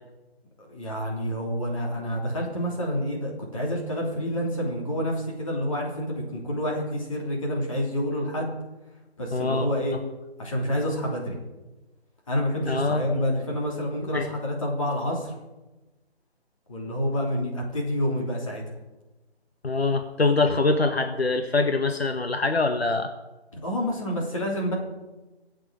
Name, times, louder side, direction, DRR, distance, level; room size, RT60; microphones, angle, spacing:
voice 1, 0.6-8.5 9.2-10.0 10.4-11.4 12.3-15.3 16.7-18.6 23.5-24.7, equal, 30° left, -2 dB, 3.1 m, -28 dB
voice 2, 9.3-9.7 12.7-13.2 14.1-14.3 19.6-23.1, left 3 dB, 70° left, 7 dB, 1.3 m, -24 dB
24.0 x 8.0 x 5.1 m, 1.1 s
figure-of-eight pair, 175°, 32 cm